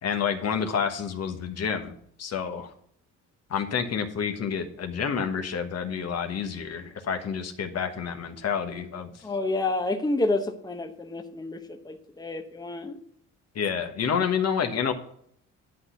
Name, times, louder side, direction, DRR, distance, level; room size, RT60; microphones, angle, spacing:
voice 1, 0.0-2.7 3.5-9.2 13.5-14.9, left 7 dB, 55° left, 6 dB, 1.3 m, -29 dB
voice 2, 9.2-13.0, left 2 dB, 15° left, 6 dB, 0.9 m, -29 dB
11.0 x 4.1 x 7.8 m, 0.69 s
cardioid pair, 90°, 30 cm